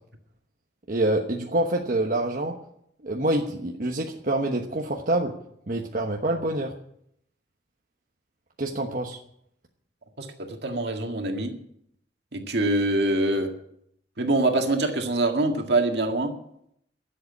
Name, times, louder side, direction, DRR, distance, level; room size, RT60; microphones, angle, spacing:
voice 1, 0.9-2.6 3.0-5.3 5.7-6.7 8.6-9.2, right 1 dB, 50° right, 1 dB, 1.1 m, -26 dB
voice 2, 10.2-11.5 12.3-13.5 14.2-16.3, right 2 dB, 70° right, 4 dB, 1.9 m, -24 dB
12.5 x 7.9 x 9.8 m, 0.73 s
head